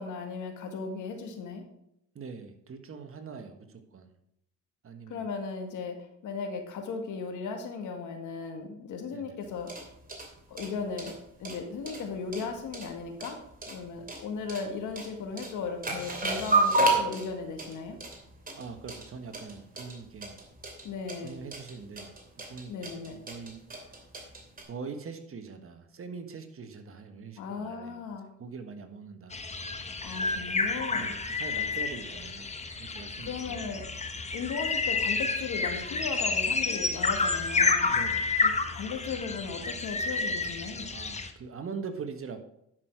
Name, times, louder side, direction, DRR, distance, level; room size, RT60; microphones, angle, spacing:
voice 1, 0.0-1.6 5.1-6.0 6.2-9.7 10.5-11.1 11.4-13.4 13.7-18.0 20.8-21.4 22.7-23.2 27.4-28.3 30.0-31.1 33.3-33.8 34.3-37.9 38.4-40.9, left 5 dB, 80° left, 5 dB, 1.9 m, -36 dB
voice 2, 2.1-4.1 4.8-5.3 9.1-9.4 18.6-20.4 21.2-22.1 22.4-22.9 23.3-23.6 24.7-29.4 30.9-32.5 32.8-33.7 37.8-38.4 40.9-42.4, right 5 dB, 45° right, 7 dB, 1.4 m, -42 dB
sound 1, 9.5-24.6, right 2 dB, 30° right, 2.7 m, -33 dB
sound 2, 29.3-41.3, left 4 dB, 20° left, 1.1 m, -30 dB
10.5 x 6.4 x 4.7 m, 0.77 s
cardioid pair, 90°, 30 cm